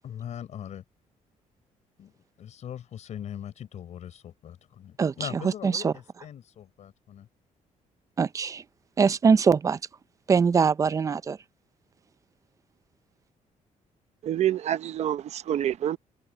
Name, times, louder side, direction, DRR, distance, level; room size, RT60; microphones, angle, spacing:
voice 1, 0.0-0.8 2.0-2.1 2.4-7.3, left 9 dB, 60° left, 4.6 m, -40 dB
voice 2, 5.6-5.9 8.2-8.6 9.0-9.8 10.3-11.4, right 5 dB, 25° right, 0.4 m, -22 dB
voice 3, 14.2-16.0, right 11 dB, 55° right, 0.8 m, -27 dB
cardioid pair, 155°, 14 cm